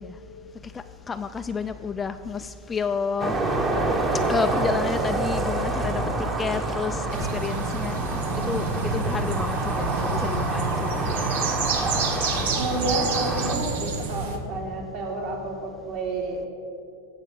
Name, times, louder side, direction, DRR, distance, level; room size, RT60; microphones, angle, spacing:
voice 1, 0.6-3.4 4.3-8.2 8.5-11.2, left 5 dB, 15° left, 9 dB, 0.4 m, -30 dB
sound 1, 3.2-13.6, right 2 dB, 20° right, 1.4 m, -27 dB
sound 2, 7.1-14.4, right 4 dB, 75° right, 1.6 m, -29 dB
voice 2, 8.3-8.6 9.7-10.0 12.6-16.5, right 2 dB, 45° right, 0 dB, 3.2 m, -30 dB
18.0 x 7.3 x 6.7 m, 2.5 s
supercardioid pair, 145°, 0 cm